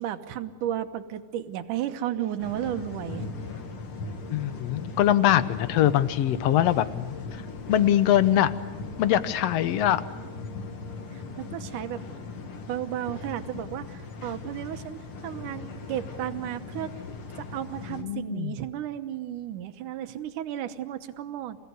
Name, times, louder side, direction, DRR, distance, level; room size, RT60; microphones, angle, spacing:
voice 1, 0.0-3.3 11.1-12.1 12.7-16.9 17.4-21.6, right 11 dB, 80° right, 9 dB, 2.6 m, -33 dB
sound 1, 2.4-18.0, left 3 dB, 50° left, 2.4 m, -39 dB
voice 2, 4.3-7.2 7.7-8.5 9.0-10.0 17.9-18.6, left 11 dB, 65° left, 13 dB, 1.7 m, -23 dB
28.5 x 17.0 x 9.5 m, 1.3 s
omnidirectional pair, 3.6 m